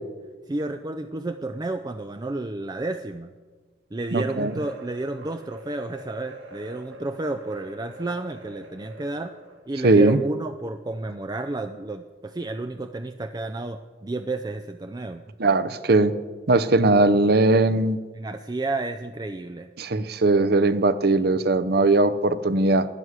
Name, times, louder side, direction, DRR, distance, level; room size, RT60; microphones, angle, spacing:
voice 1, 0.5-3.3 3.9-9.3 9.7-15.2 18.1-19.7, right 2 dB, 20° right, 8 dB, 0.4 m, -31 dB
voice 2, 4.1-4.5 9.8-10.2 15.4-16.1 16.5-18.0 19.8-22.9, right 2 dB, 55° right, 14 dB, 0.7 m, -19 dB
sound 1, 4.2-9.7, right 1 dB, 80° right, 2.5 m, -45 dB
12.5 x 10.0 x 8.0 m, 1.4 s
head